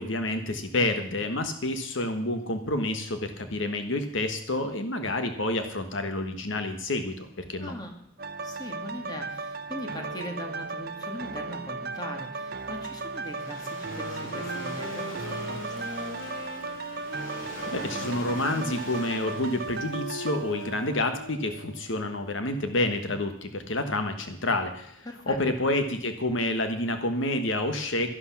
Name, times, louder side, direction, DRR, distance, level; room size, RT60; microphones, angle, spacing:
voice 1, 0.0-7.7 17.7-28.1, left 2 dB, 65° left, 7 dB, 1.3 m, -29 dB
voice 2, 7.6-7.9 8.4-15.9 25.0-25.4, equal, 20° left, 3 dB, 2.2 m, -40 dB
sound 1, 8.2-21.9 22.4-22.5, right 3 dB, 50° right, 0.7 m, -36 dB
Waves surf, 12.6-20.8, left 1 dB, 40° left, 3.7 m, -45 dB
sound 2, 13.8-21.4, left 1 dB, 85° left, 3.8 m, -41 dB
12.5 x 11.5 x 5.9 m, 0.70 s
head